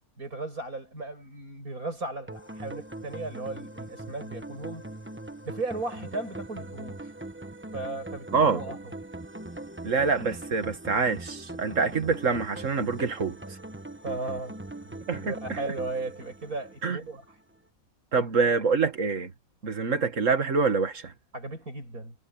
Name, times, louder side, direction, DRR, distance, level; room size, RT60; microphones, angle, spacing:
voice 1, 0.2-4.9 5.4-7.1 7.7-8.8 14.0-17.2 18.1-18.2 21.3-22.1, right 2 dB, 85° right, 8.1 m, -36 dB
sound 1, 2.3-17.3, right 1 dB, 10° right, 1.0 m, -41 dB
voice 2, 9.8-13.4 15.1-15.6 16.8-17.0 18.1-19.3 19.6-21.1, right 4 dB, 60° right, 2.2 m, -26 dB
omnidirectional pair, 1.5 m